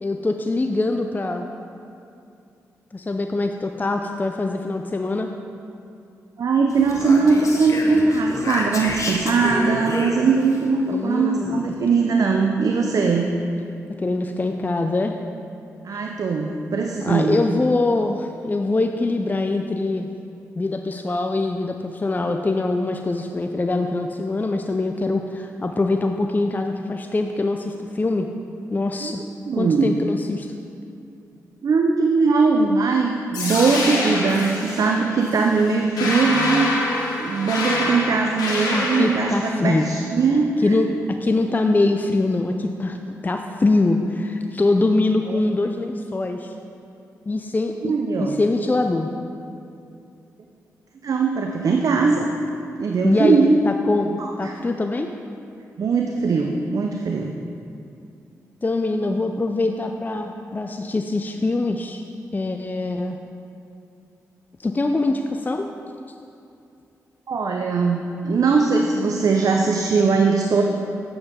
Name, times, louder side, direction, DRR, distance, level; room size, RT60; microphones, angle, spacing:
voice 1, 0.0-1.5 2.9-5.3 10.9-11.7 14.0-15.2 15.9-16.0 17.0-20.1 20.6-28.3 28.7-29.2 29.6-30.5 38.7-39.9 40.6-40.9 41.2-43.0 43.2-46.5 47.3-47.9 48.2-49.1 53.0-55.1 58.6-62.0 62.3-63.2 64.6-65.7, left 2 dB, 25° left, 5 dB, 0.5 m, -23 dB
voice 2, 6.4-13.3 15.8-17.4 29.0-29.1 29.5-29.9 31.6-36.8 37.2-40.8 45.3-45.4 47.8-48.4 51.0-52.3 52.8-53.6 54.2-54.5 55.8-57.3 67.3-70.6, right 4 dB, 60° right, 2 dB, 0.6 m, -20 dB
Speech, 6.7-10.6, left 2 dB, 55° left, 1.2 m, -29 dB
sound 1, 33.3-39.3, left 2 dB, 85° left, 1.3 m, -26 dB
7.8 x 7.7 x 3.7 m, 2.6 s
supercardioid pair, 45°, 7 cm